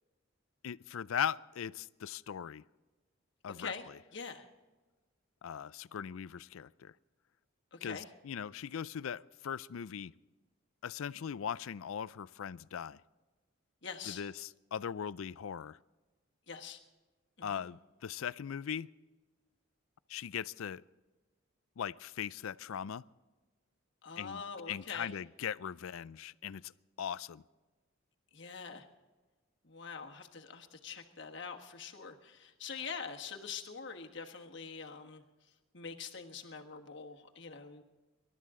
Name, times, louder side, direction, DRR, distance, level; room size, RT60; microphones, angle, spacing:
voice 1, 0.6-2.6 3.4-3.7 5.4-6.9 7.8-10.1 10.8-13.0 14.1-15.8 17.4-18.9 20.1-20.8 21.8-23.0 24.2-24.4 24.7-26.7 27.0-27.4, left 8 dB, 75° left, 0.4 m, -39 dB
voice 2, 3.6-4.5 7.7-8.1 13.8-14.2 16.5-16.8 17.4-17.6 24.0-25.1 28.3-28.8 29.6-35.2 35.7-37.8, left 5 dB, 55° left, 1.5 m, -44 dB
27.0 x 12.5 x 3.8 m
head